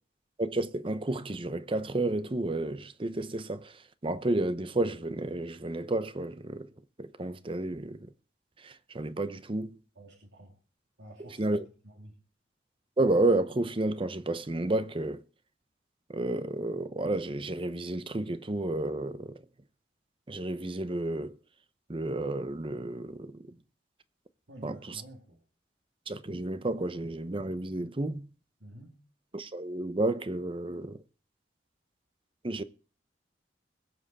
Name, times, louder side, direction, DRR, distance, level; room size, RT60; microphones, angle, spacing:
voice 1, 0.4-3.7 4.0-6.7 7.0-8.0 8.6-9.8 11.4-11.6 13.0-15.2 16.1-19.4 20.3-21.4 21.9-23.3 24.6-25.0 26.1-28.3 29.3-31.0 32.4-32.6, right 2 dB, 30° right, 0.8 m, -31 dB
voice 2, 9.9-10.5 11.0-12.2 24.5-25.4 28.6-29.0, right 1 dB, 80° right, 2.9 m, -50 dB
21.5 x 7.7 x 4.1 m
head